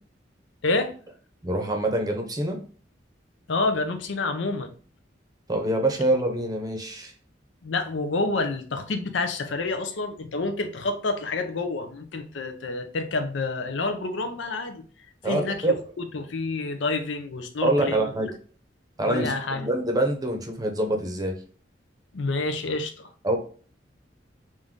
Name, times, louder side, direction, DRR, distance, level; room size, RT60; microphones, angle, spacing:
voice 1, 0.6-0.9 3.5-4.7 7.6-14.8 15.2-18.1 19.0-19.7 22.1-23.1, left 3 dB, 85° left, 0.6 m, -28 dB
voice 2, 1.4-2.6 5.5-7.1 15.2-15.8 17.6-18.3 19.0-21.4 23.2-23.4, right 1 dB, 20° right, 0.7 m, -25 dB
3.7 x 2.6 x 3.6 m
head